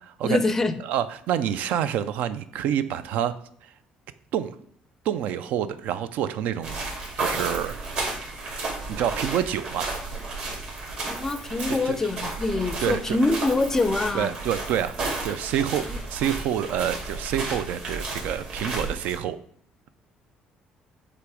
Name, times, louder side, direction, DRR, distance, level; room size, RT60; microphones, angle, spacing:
voice 1, 0.2-0.7 11.2-14.3 15.9-16.0, left 2 dB, 15° left, 10 dB, 0.4 m, -24 dB
voice 2, 0.8-3.3 3.6-3.7 4.3-4.6 5.0-6.8 7.2-7.8 8.9-9.9 11.8-12.0 12.8-13.2 14.1-15.8 16.1-19.4, right 10 dB, 70° right, 13 dB, 0.4 m, -27 dB
sound 1, 6.6-19.2, right 3 dB, 50° right, 2.4 m, -33 dB
8.0 x 3.0 x 4.9 m, 0.62 s
cardioid pair, 150°, 3 cm